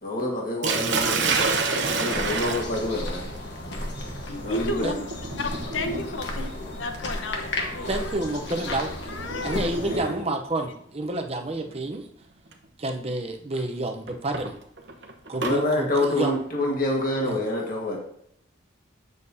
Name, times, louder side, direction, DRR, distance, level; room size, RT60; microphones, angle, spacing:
voice 1, 0.0-3.2 4.4-5.0 9.5-10.1 15.4-18.0, left 1 dB, 45° left, -2 dB, 1.6 m, -27 dB
Sink (filling or washing), 0.6-10.6 11.7-12.0 12.5-12.6 14.1-15.6, right 4 dB, 65° right, 0.9 m, -30 dB
sound 1, 2.0-10.0, left 1 dB, 60° left, 1.3 m, -34 dB
voice 2, 4.3-4.9 5.4-6.5 6.8-8.4 8.7-8.8 9.1-9.7, left 2 dB, 80° left, 6 dB, 0.9 m, -32 dB
voice 3, 7.9-8.9 9.4-12.0 12.8-14.5 15.3-16.4 17.3-17.4, right 2 dB, 30° right, 5 dB, 0.7 m, -29 dB
8.8 x 6.5 x 2.7 m, 0.71 s
head